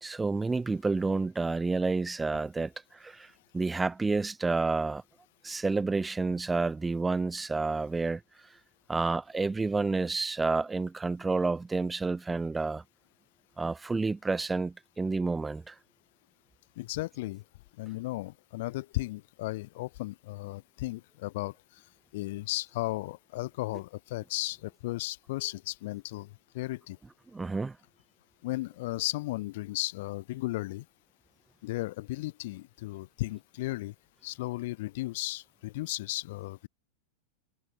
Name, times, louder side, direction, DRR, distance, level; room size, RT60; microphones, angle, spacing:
voice 1, 0.0-2.7 3.0-5.0 5.4-8.2 8.9-12.8 13.6-15.7 27.3-27.7, right 3 dB, 10° right, 1.3 m, -29 dB
voice 2, 16.8-17.4 17.8-21.5 22.1-27.0 28.4-30.8 31.6-33.9 34.2-36.7, left 19 dB, 50° left, 1.4 m, -35 dB
figure-of-eight pair, 90°, 0 cm